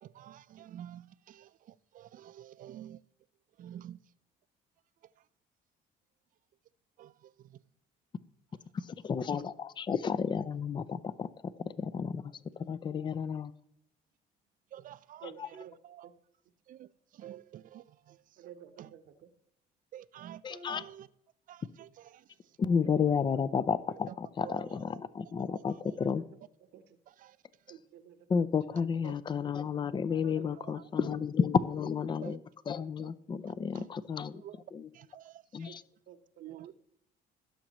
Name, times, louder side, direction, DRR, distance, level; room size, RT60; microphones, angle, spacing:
voice 1, 0.0-3.0 3.6-4.0 5.0-5.3 7.0-7.6 14.7-16.1 16.7-18.5 18.8-18.9 19.9-21.1 21.5-22.6 24.1-24.7 25.4-26.0 27.1-27.4 29.0-29.1 30.2-30.8 32.2-32.4 33.7-33.9 34.4-34.6 34.9-35.7 36.4-36.7, right 11 dB, 55° right, 0.5 m, -50 dB
voice 2, 8.7-13.5 15.4-15.5 20.4-20.8 22.6-26.2 28.3-32.4 32.7-34.4 34.7-34.9 35.5-35.8, left 6 dB, 25° left, 0.5 m, -32 dB
voice 3, 15.2-15.8 16.0-16.1 18.4-19.3 22.8-23.1 26.2-26.3 26.7-27.0 27.7-28.3 30.3-30.6 32.7-33.1 33.6-33.9 35.7-35.8 36.1-36.7, right 9 dB, 80° right, 1.2 m, -52 dB
16.5 x 7.3 x 3.0 m
cardioid pair, 110°, 17 cm